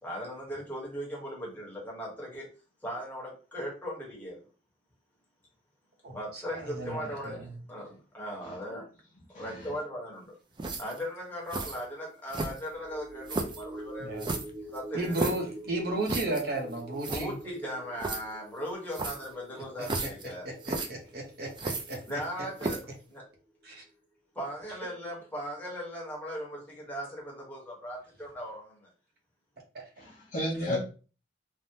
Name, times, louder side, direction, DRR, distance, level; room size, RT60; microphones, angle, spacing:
voice 1, 0.0-2.5 2.8-4.4 6.1-8.9 9.3-10.3 10.8-14.2 14.6-15.3 17.1-20.5 22.1-22.8 23.1-23.2 24.3-28.9, equal, 10° left, -4 dB, 1.0 m, -38 dB
voice 2, 6.0-7.6 14.0-14.3 14.9-17.4 19.8-20.1 20.4-22.0 23.6-23.8 29.7-29.8 30.7-30.8, right 2 dB, 55° right, 1 dB, 0.8 m, -34 dB
voice 3, 9.3-9.7 30.0-30.8, left 1 dB, 45° left, -4 dB, 0.7 m, -33 dB
sound 1, 10.6-11.0 11.5-11.8 12.3-12.8 13.3-13.6 14.2-15.5 16.1-16.4 16.7-16.8 17.0-17.3 18.0-18.2 18.9-19.3 19.8-20.3 20.6-20.9 21.6-22.2 22.6-22.9, right 3 dB, 25° right, 0.3 m, -33 dB
sound 2, 12.7-23.3 23.7-23.8, right 1 dB, 85° left, 1.0 m, -46 dB
3.3 x 2.1 x 2.7 m, 0.36 s
head